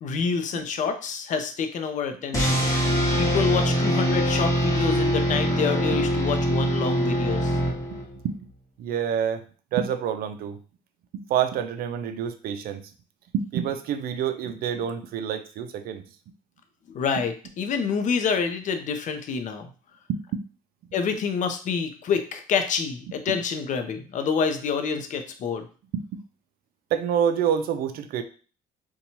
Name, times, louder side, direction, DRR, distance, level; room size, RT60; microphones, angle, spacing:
voice 1, 0.0-2.7 3.2-7.6 16.9-19.7 20.9-25.7, left 6 dB, 50° left, 8 dB, 0.5 m, -27 dB
sound 1, 2.3-8.2, equal, 20° left, 0.9 m, -23 dB
voice 2, 8.8-9.4 9.7-10.6 11.3-12.8 13.3-16.0 20.1-20.5 25.9-26.2 26.9-28.2, right 8 dB, 65° right, 8 dB, 0.4 m, -27 dB
2.7 x 2.2 x 2.9 m, 0.38 s
cardioid pair, 110°, 17 cm